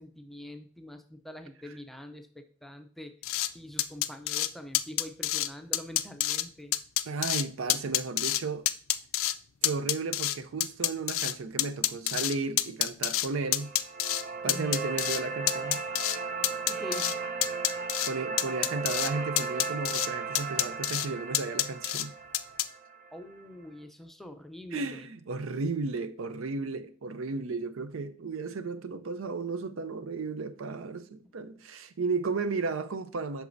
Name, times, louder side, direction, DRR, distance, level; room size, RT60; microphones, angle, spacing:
voice 1, 0.0-3.1 3.5-6.8 14.4-14.8 16.7-17.5 23.1-25.1, left 1 dB, ahead, 0.5 m, -44 dB
sound 1, 3.2-3.5 3.8-4.5 4.7-5.5 5.7-6.4 6.7-7.4 7.7-8.4 8.7-9.3 9.6-11.3 11.6-13.3 13.5-14.2 14.5-15.2 15.5-16.2 16.4-17.1 17.4-18.1 18.4-19.1 19.4-20.1 20.3-21.1 21.3-22.0 22.3-22.6, left 14 dB, 80° left, 0.4 m, -27 dB
voice 2, 7.1-8.7 9.6-13.7 14.4-15.8 18.1-22.1 24.7-33.5, right 4 dB, 80° right, 0.5 m, -34 dB
sound 2, 13.4-23.5, right 5 dB, 45° right, 0.8 m, -36 dB
8.2 x 6.0 x 2.6 m
head